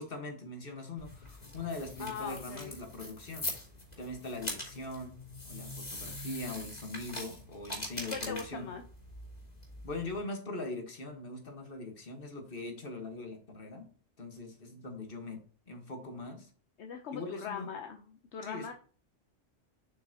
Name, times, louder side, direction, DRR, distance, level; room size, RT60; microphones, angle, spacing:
voice 1, 0.0-3.5 4.0-5.2 5.4-8.7 9.8-13.9 14.2-15.4 15.7-16.5 17.1-17.7 18.4-18.7, left 2 dB, 50° left, 4 dB, 1.8 m, -41 dB
sound 1, 1.0-10.2, left 2 dB, 35° left, 2.9 m, -43 dB
voice 2, 2.0-2.8 8.0-8.8 16.8-18.7, left 6 dB, 70° left, 5 dB, 1.1 m, -41 dB
7.7 x 5.7 x 2.9 m, 0.41 s
omnidirectional pair, 1.2 m